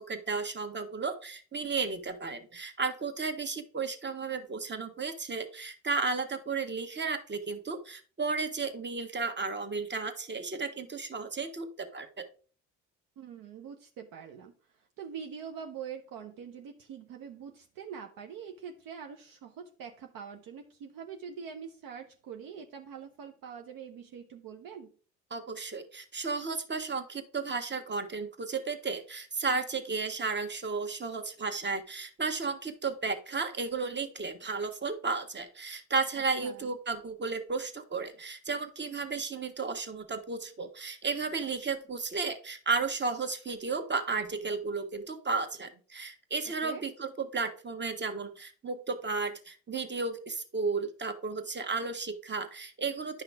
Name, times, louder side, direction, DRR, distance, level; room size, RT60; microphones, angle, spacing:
voice 1, 0.0-12.3 25.3-53.2, right 4 dB, 25° right, 7 dB, 1.5 m, -33 dB
voice 2, 13.2-24.9 36.4-36.7 46.6-46.8, right 7 dB, 55° right, 4 dB, 0.9 m, -44 dB
10.5 x 5.7 x 3.5 m, 0.42 s
figure-of-eight pair, 50°, 40 cm